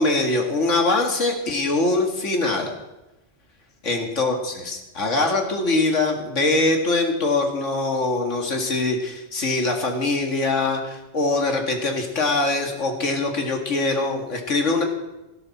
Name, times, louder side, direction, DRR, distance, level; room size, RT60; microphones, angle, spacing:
voice 1, 0.0-2.7 3.8-14.8, left 2 dB, 85° left, 3 dB, 2.3 m, -23 dB
17.5 x 12.5 x 4.2 m, 1.0 s
omnidirectional pair, 1.2 m